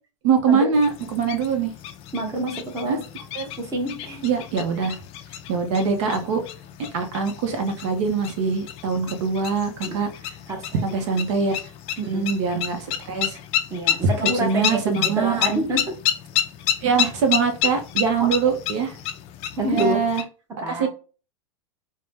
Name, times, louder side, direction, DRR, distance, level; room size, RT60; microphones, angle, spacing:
voice 1, 0.2-1.7 2.8-3.0 3.3-3.5 4.2-5.0 5.5-6.4 6.9-10.1 10.8-11.6 12.1-13.4 14.2-15.5 16.8-19.0 19.6-20.2 20.7-20.9, right 5 dB, 65° right, 0.8 m, -23 dB
sound 1, 0.7-20.2, left 10 dB, 35° left, 0.4 m, -30 dB
voice 2, 2.1-3.0 3.6-4.2 9.8-10.0 10.5-10.8 12.0-12.3 13.7-16.0 18.2-18.6 19.6-20.0 20.6-20.9, right 1 dB, 20° right, 0.9 m, -27 dB
2.7 x 2.2 x 3.3 m
supercardioid pair, 130°, 17 cm